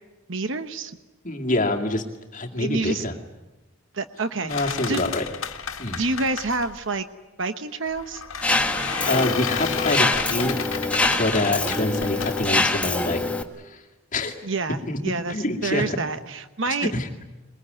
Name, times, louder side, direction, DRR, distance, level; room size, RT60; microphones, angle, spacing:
voice 1, 0.3-1.0 2.6-3.0 3.9-5.0 6.0-7.0 7.4-8.2 14.4-15.3 15.6-16.9, right 3 dB, 60° right, 9 dB, 1.1 m, -28 dB
voice 2, 1.2-2.0 2.3-3.1 4.4-5.2 5.8-6.0 9.1-10.6 11.2-13.2 13.6-13.8 14.1-14.3 14.9-15.0 15.3-16.0 16.9-17.1, left 2 dB, 40° left, 2 dB, 2.2 m, -26 dB
sound 1, 4.5-6.8 7.9-13.3, left 7 dB, 75° left, 1.7 m, -32 dB
Mechanisms, 8.4-13.4, left 2 dB, 5° left, 1.4 m, -24 dB
22.5 x 21.0 x 9.4 m, 1.1 s
head